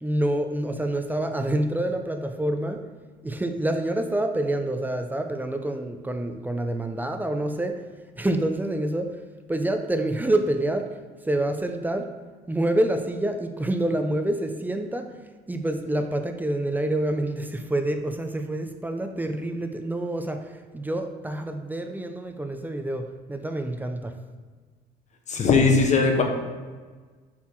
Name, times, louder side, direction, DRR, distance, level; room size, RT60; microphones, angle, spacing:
voice 1, 0.0-2.8 3.2-7.8 8.2-9.1 9.5-10.9 11.2-12.1 12.5-15.1 15.5-24.1, right 1 dB, 10° right, 6 dB, 0.6 m, -27 dB
voice 2, 25.3-26.2, left 4 dB, 45° left, 3 dB, 1.3 m, -19 dB
7.1 x 4.6 x 4.6 m, 1.4 s
cardioid pair, 110°, 17 cm